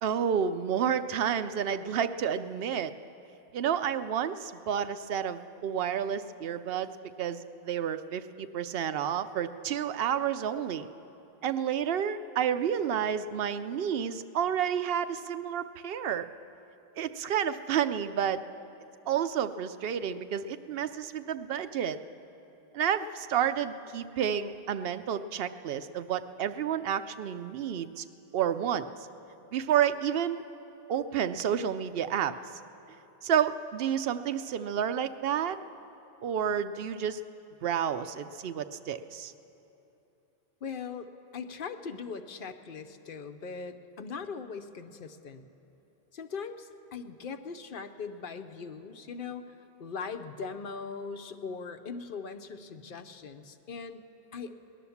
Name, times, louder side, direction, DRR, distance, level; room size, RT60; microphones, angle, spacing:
voice 1, 0.0-2.9 3.5-6.9 7.2-10.9 11.4-16.3 17.0-18.4 19.1-22.0 22.7-28.0 28.3-28.9 29.5-30.4 30.9-32.3 33.2-35.6 36.2-37.2 37.6-39.3, right 8 dB, 70° right, 11 dB, 0.8 m, -30 dB
voice 2, 40.6-45.5 46.1-49.5 49.8-54.6, left 5 dB, 60° left, 8 dB, 0.8 m, -40 dB
18.5 x 11.0 x 7.1 m, 2.9 s
omnidirectional pair, 1.0 m